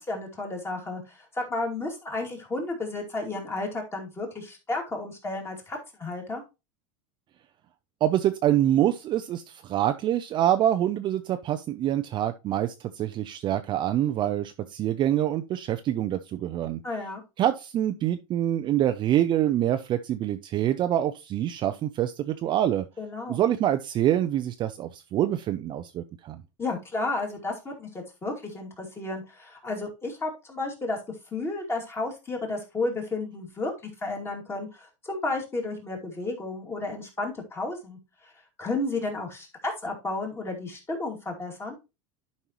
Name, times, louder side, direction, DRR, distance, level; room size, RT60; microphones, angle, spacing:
voice 1, 0.0-6.4 16.8-17.2 23.0-23.4 26.6-31.0 31.3-33.7 34.0-38.3 38.6-41.8, left 2 dB, 15° left, 1 dB, 2.4 m, -32 dB
voice 2, 8.0-16.8 17.4-22.8 23.3-26.4, right 12 dB, 30° right, 8 dB, 0.5 m, -25 dB
11.0 x 5.4 x 3.0 m, 0.26 s
supercardioid pair, 145°, 17 cm